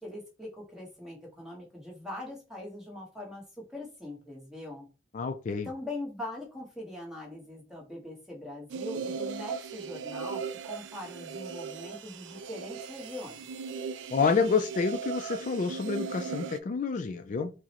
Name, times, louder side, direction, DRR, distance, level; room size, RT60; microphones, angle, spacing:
voice 1, 0.0-3.4 3.7-4.9 5.6-13.5, left 1 dB, 5° right, -2 dB, 1.1 m, -42 dB
voice 2, 5.1-5.7 14.1-17.5, left 5 dB, 45° left, 6 dB, 0.3 m, -28 dB
sound 1, 8.7-16.6, right 5 dB, 75° right, 0.3 m, -38 dB
4.6 x 2.0 x 2.9 m, 0.32 s
head